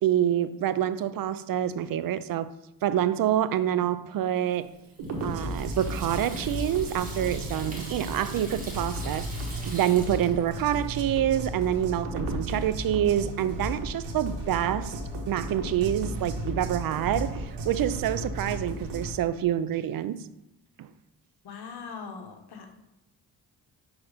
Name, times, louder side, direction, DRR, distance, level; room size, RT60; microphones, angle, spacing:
voice 1, 0.0-2.5 2.8-4.7 5.2-9.3 9.6-15.0 15.3-20.2 20.8-20.9, right 11 dB, 55° right, 0.5 m, -27 dB
Water tap faucet / Sink (filling or washing), 4.5-11.2, right 1 dB, 20° right, 1.9 m, -44 dB
sound 1, 5.0-19.1, right 1 dB, 85° right, 1.3 m, -34 dB
voice 2, 21.4-22.7, left 5 dB, 65° left, 1.2 m, -41 dB
6.0 x 4.0 x 4.9 m
cardioid pair, 90°, 42 cm